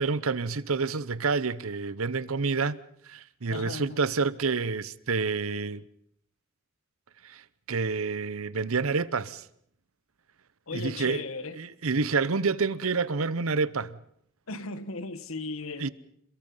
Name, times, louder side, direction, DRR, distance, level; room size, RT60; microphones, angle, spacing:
voice 1, 0.0-2.8 3.1-5.8 7.2-7.4 7.7-9.4 10.7-11.2 11.6-14.0 15.8-15.9, right 4 dB, 80° right, 0.9 m, -28 dB
voice 2, 3.5-4.0 10.7-11.6 14.5-15.9, left 3 dB, 70° left, 1.4 m, -36 dB
28.0 x 22.0 x 5.6 m
head